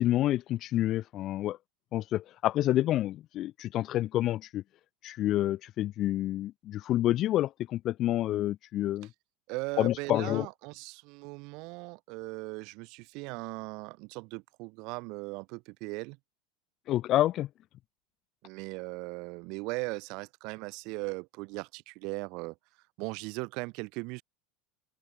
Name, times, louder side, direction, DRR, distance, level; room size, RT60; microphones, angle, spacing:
voice 1, 0.0-1.6 1.9-4.6 5.0-9.1 9.8-10.5 16.9-17.5, left 14 dB, 40° left, 1.0 m, -28 dB
voice 2, 9.5-16.2 18.4-22.6 23.0-24.2, right 27 dB, 55° right, 7.8 m, -38 dB
open air
supercardioid pair, 145°, 0 cm